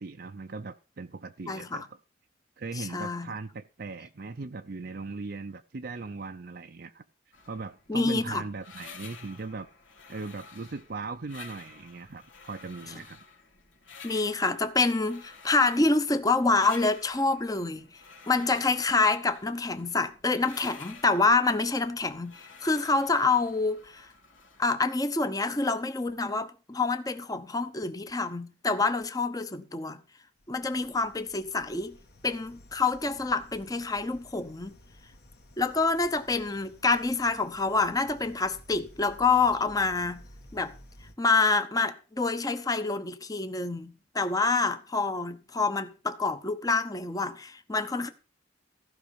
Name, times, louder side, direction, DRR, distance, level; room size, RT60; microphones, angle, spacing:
voice 1, 0.0-1.8 2.6-7.0 7.5-9.7 10.1-13.2, right 3 dB, 55° right, 0.6 m, -39 dB
voice 2, 1.5-1.9 2.7-3.3 7.9-8.4 14.0-17.9 18.3-24.1 24.6-30.0 30.5-32.0 32.2-34.7 35.6-40.2 40.5-40.7 41.2-48.1, left 3 dB, 20° left, 0.8 m, -27 dB
sound 1, 7.3-24.8, left 5 dB, 90° left, 2.5 m, -51 dB
sound 2, 30.4-41.1, left 1 dB, 55° left, 1.6 m, -54 dB
15.0 x 5.5 x 6.8 m
head